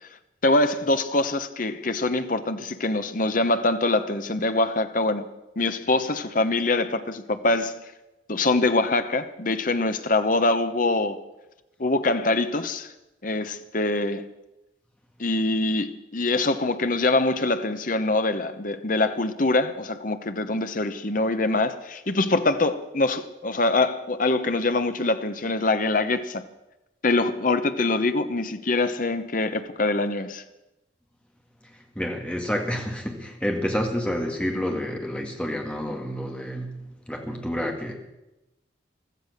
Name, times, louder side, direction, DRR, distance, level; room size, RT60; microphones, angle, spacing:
voice 1, 0.4-5.3 5.6-7.8 8.3-11.2 11.8-12.9 13.2-14.3 15.2-26.5 27.0-30.4, left 2 dB, 45° left, 1.0 m, -24 dB
voice 2, 32.0-37.9, equal, 5° left, 2.0 m, -29 dB
15.5 x 13.5 x 6.6 m
head